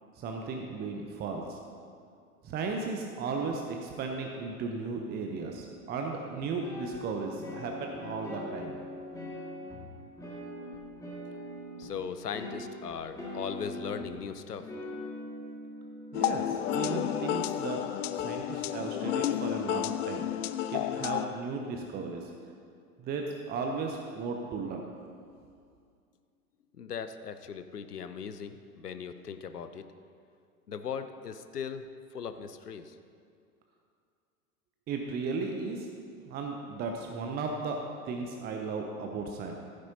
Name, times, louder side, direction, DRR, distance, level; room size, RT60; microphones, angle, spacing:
voice 1, 0.2-1.6 2.4-8.8 16.1-17.8 18.2-20.3 20.7-22.3 23.0-24.9 34.9-35.9 36.3-39.5, right 4 dB, 20° right, 2 dB, 0.8 m, -35 dB
sound 1, 6.3-11.9 12.3-14.3 14.6-16.3 16.7-17.5, left 1 dB, 5° left, 2.2 m, -42 dB
voice 2, 11.8-14.9 26.7-29.8 30.7-31.9 32.1-33.0, left 7 dB, 80° left, 10 dB, 0.8 m, -39 dB
sound 2, 16.1-21.3, left 12 dB, 55° left, 0.5 m, -31 dB
15.0 x 9.7 x 2.9 m, 2.3 s
figure-of-eight pair, 95°, 46 cm